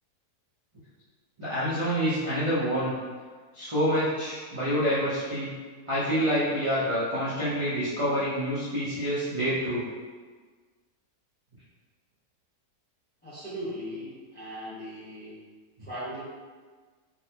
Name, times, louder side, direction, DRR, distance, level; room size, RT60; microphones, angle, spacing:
voice 1, 1.4-2.9 3.5-5.5 5.9-9.8, equal, 40° right, -12 dB, 0.4 m, -27 dB
voice 2, 13.2-15.3 15.8-16.2, equal, 10° left, -10 dB, 0.6 m, -38 dB
4.0 x 2.1 x 2.8 m, 1.4 s
omnidirectional pair, 1.7 m